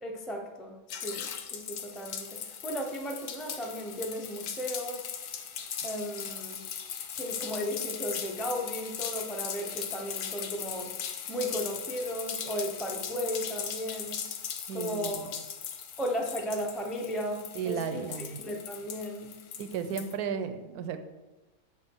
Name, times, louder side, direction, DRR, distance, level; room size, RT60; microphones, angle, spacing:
voice 1, 0.0-5.1 5.8-6.6 7.2-10.9 11.3-14.2 14.7-15.3 16.0-18.0 18.4-19.4, equal, ahead, 0 dB, 0.5 m, -35 dB
sound 1, 0.9-20.1, left 8 dB, 85° left, 1.2 m, -39 dB
voice 2, 14.7-15.3 17.6-18.4 19.6-21.0, right 7 dB, 85° right, 10 dB, 1.1 m, -34 dB
7.6 x 6.1 x 4.6 m, 1.1 s
omnidirectional pair, 1.6 m